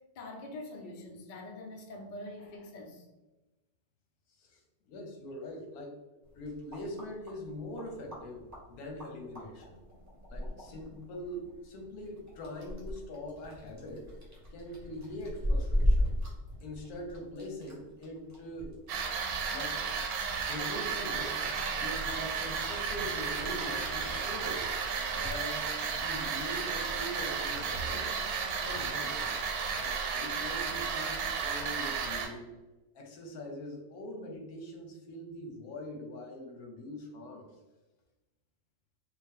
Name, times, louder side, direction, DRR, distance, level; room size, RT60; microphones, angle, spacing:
voice 1, 0.2-3.0, left 1 dB, 60° left, 1 dB, 0.5 m, -44 dB
voice 2, 4.4-6.0 6.3-9.8 10.3-14.1 14.5-16.2 16.6-18.8 19.5-19.8 20.5-21.4 21.7-24.7 25.1-28.2 28.6-29.4 29.8-32.5 32.9-37.5, left 1 dB, 85° left, 2 dB, 1.2 m, -42 dB
sound 1, 6.2-25.4, equal, 15° right, 0.6 m, -38 dB
sound 2, 18.9-32.3, right 6 dB, 85° right, 1.2 m, -33 dB
sound 3, 21.4-29.5, right 3 dB, 70° right, 0.9 m, -49 dB
3.5 x 2.2 x 3.6 m, 1.1 s
omnidirectional pair, 1.6 m